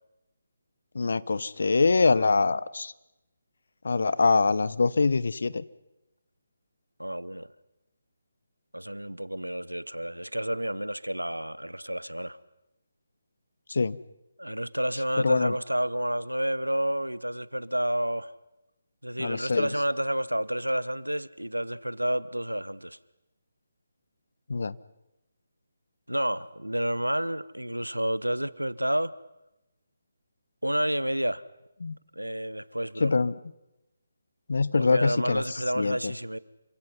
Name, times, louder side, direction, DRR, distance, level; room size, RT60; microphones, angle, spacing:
voice 1, 0.9-2.9 3.8-5.6 13.7-14.0 15.2-15.5 19.2-19.7 24.5-24.8 31.8-32.0 33.0-33.3 34.5-35.4 35.8-36.1, left 4 dB, 60° left, 0.9 m, -24 dB
voice 2, 7.0-7.5 8.7-12.4 14.4-18.3 19.0-23.0 26.1-29.1 30.6-31.4 32.1-33.1 34.7-36.4, right 1 dB, 90° right, 1.0 m, -30 dB
28.0 x 25.0 x 5.6 m
figure-of-eight pair, 150°, 0 cm